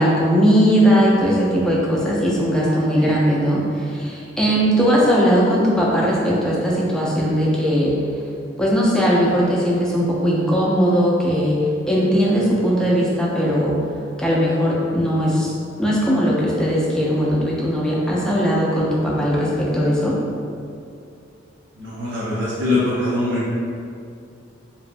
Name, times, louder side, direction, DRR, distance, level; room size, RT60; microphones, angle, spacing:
voice 1, 0.0-7.9 8.6-11.6 11.9-13.8 14.2-15.5 15.8-20.2, equal, 5° left, -5 dB, 0.3 m, -19 dB
voice 2, 21.8-23.5, left 2 dB, 70° right, -9 dB, 0.6 m, -23 dB
2.6 x 2.1 x 2.5 m, 2.4 s
head